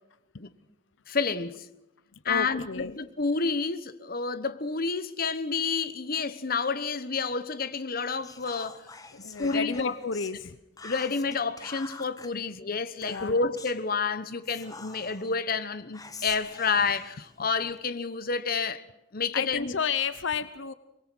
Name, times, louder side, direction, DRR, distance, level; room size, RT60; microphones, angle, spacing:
voice 1, 1.1-1.7 2.2-8.9 9.2-9.9 10.8-18.8 19.1-19.8, left 4 dB, 50° left, 1.1 m, -29 dB
voice 2, 2.2-2.9 9.2-10.6 12.3-12.4 13.1-13.4 19.3-20.7, left 6 dB, 75° left, 0.8 m, -31 dB
Whispering, 8.2-10.4 10.8-12.3 13.0-13.8 14.4-15.3 15.9-17.8, left 4 dB, 20° left, 1.4 m, -46 dB
24.5 x 22.0 x 6.2 m
head